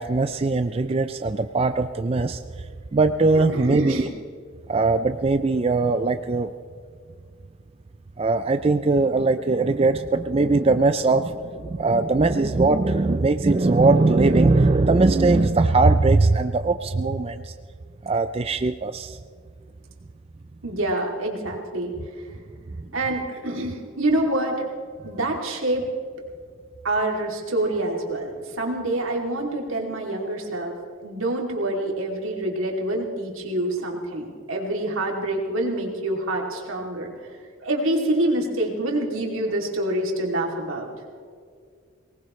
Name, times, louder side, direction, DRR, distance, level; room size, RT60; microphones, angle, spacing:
voice 1, 0.0-2.4 2.9-4.1 4.7-6.5 8.2-17.5 18.0-19.2, right 3 dB, 30° right, 9 dB, 0.4 m, -20 dB
voice 2, 3.5-4.1 20.6-21.9 22.9-24.6 25.0-25.8 26.8-30.8 31.0-37.1 37.6-40.9, right 1 dB, 80° right, 0 dB, 2.8 m, -26 dB
23.0 x 19.0 x 3.2 m, 2.1 s
head